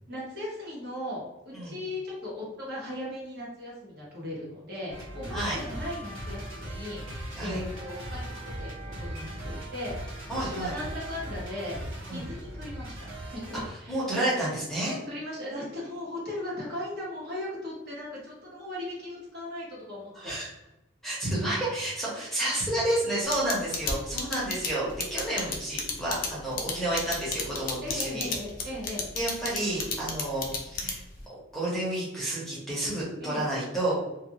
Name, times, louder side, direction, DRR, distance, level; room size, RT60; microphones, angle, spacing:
voice 1, 0.1-8.7 9.0-10.1 10.3-11.8 12.1-12.9 13.3-14.1 15.1-20.3 27.8-29.0 33.2-33.4, left 1 dB, 55° right, -5 dB, 1.2 m, -37 dB
sound 1, 4.9-13.6, right 1 dB, 80° right, 1.3 m, -38 dB
voice 2, 10.3-10.7 12.1-12.3 13.9-15.0 20.2-20.5 21.0-28.3 29.1-31.0 31.5-33.9, right 1 dB, ahead, -7 dB, 0.8 m, -30 dB
sound 2, 23.3-31.2, left 5 dB, 45° left, 0.5 m, -31 dB
2.5 x 2.2 x 2.9 m, 0.98 s
head